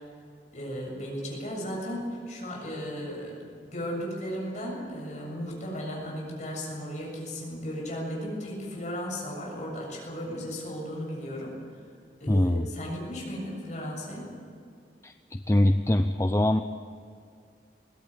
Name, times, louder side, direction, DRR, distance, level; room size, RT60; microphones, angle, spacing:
voice 1, 0.5-11.5 12.2-14.3, equal, 45° left, -1 dB, 7.4 m, -35 dB
voice 2, 12.3-12.7 15.0-16.6, left 1 dB, 15° left, 8 dB, 0.6 m, -23 dB
21.0 x 17.5 x 8.8 m, 2.3 s
head